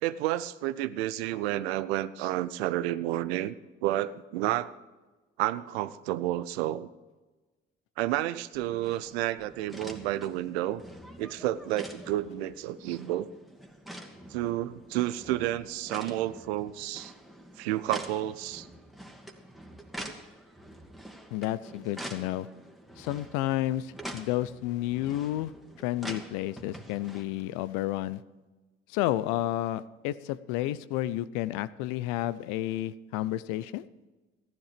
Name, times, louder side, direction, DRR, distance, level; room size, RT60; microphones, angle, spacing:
voice 1, 0.0-3.5 3.8-4.7 5.4-6.9 8.0-10.8 11.2-13.3 14.3-17.1 17.6-18.7, right 14 dB, 85° right, 15 dB, 0.6 m, -30 dB
sound 1, 8.5-27.2, right 1 dB, ahead, 2.0 m, -46 dB
voice 2, 21.3-22.5 23.0-25.5 25.8-28.2 28.9-33.9, left 14 dB, 80° left, 17 dB, 0.6 m, -31 dB
14.5 x 10.5 x 5.0 m, 1.2 s
hypercardioid pair, 50°, 31 cm